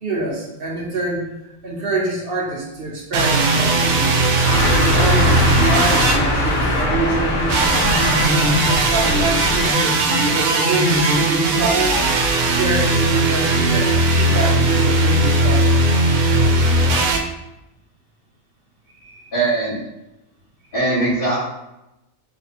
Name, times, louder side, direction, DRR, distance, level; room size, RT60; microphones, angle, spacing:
voice 1, 0.0-1.3 1.6-4.2 4.8-7.8 8.7-12.0 12.5-15.9 17.0-17.1 19.0-19.3, right 3 dB, 50° right, -3 dB, 0.8 m, -25 dB
sound 1, 3.1-6.9 7.5-17.2, right 2 dB, 80° right, 1.0 m, -18 dB
sound 2, 4.4-9.7, left 1 dB, 80° left, 1.1 m, -21 dB
voice 2, 19.3-19.8 20.7-21.4, right 2 dB, 45° left, -11 dB, 1.4 m, -20 dB
3.3 x 2.7 x 4.1 m, 0.90 s
omnidirectional pair, 1.4 m